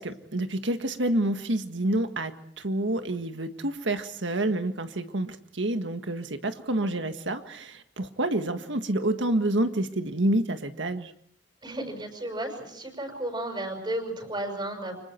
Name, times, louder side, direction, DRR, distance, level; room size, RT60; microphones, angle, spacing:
voice 1, 0.0-2.3 2.6-11.1, right 1 dB, 85° right, 7 dB, 1.7 m, -28 dB
voice 2, 11.6-15.0, right 1 dB, 25° right, 5 dB, 5.9 m, -33 dB
29.0 x 25.0 x 4.5 m, 0.64 s
head